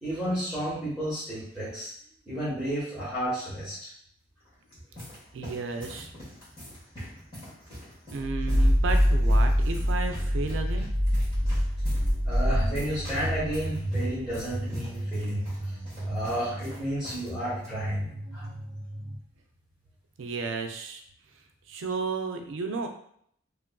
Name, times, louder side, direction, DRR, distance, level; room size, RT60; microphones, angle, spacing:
voice 1, 0.0-1.9 2.3-3.9 12.2-15.5 16.0-18.4, right 1 dB, 5° right, -12 dB, 1.0 m, -32 dB
sound 1, 4.4-17.3 17.5-17.7 18.4-18.7, equal, 30° left, 1.2 m, -44 dB
voice 2, 5.3-6.1 8.1-10.9 20.2-21.0 21.7-22.9, right 4 dB, 85° right, 5 dB, 0.4 m, -33 dB
sound 2, 8.2-19.2, equal, 35° right, 0.8 m, -27 dB
2.9 x 2.4 x 2.2 m, 0.66 s
head